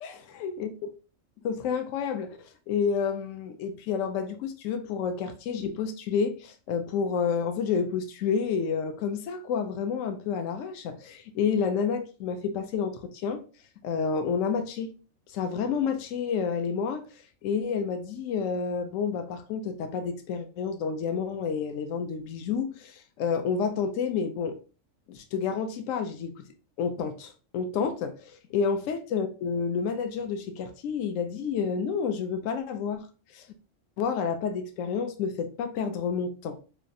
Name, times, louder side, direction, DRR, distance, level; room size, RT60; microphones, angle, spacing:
voice 1, 0.0-0.7 1.4-13.4 13.8-14.9 15.3-24.6 25.1-26.5 26.8-33.1 33.3-33.5 34.0-36.6, left 6 dB, 75° left, 1.0 m, -30 dB
4.7 x 3.2 x 2.6 m
omnidirectional pair, 1.4 m